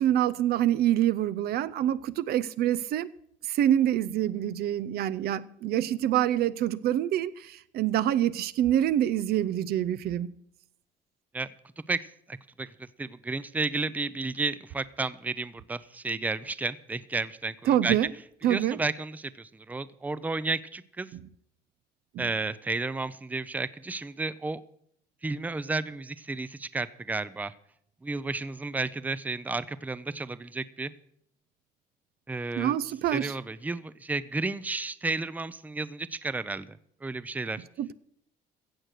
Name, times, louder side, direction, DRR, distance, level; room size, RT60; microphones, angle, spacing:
voice 1, 0.0-3.1 3.5-10.3 17.7-18.1 18.4-18.8 21.1-21.2 22.1-22.3 32.6-33.3 37.8-37.9, right 11 dB, 65° right, 0.5 m, -26 dB
voice 2, 11.9-18.0 18.5-21.1 22.2-24.6 25.2-27.5 28.0-30.9 32.3-32.8 33.1-37.6, right 3 dB, 10° right, 0.5 m, -32 dB
15.5 x 7.7 x 6.5 m
cardioid pair, 110°, 17 cm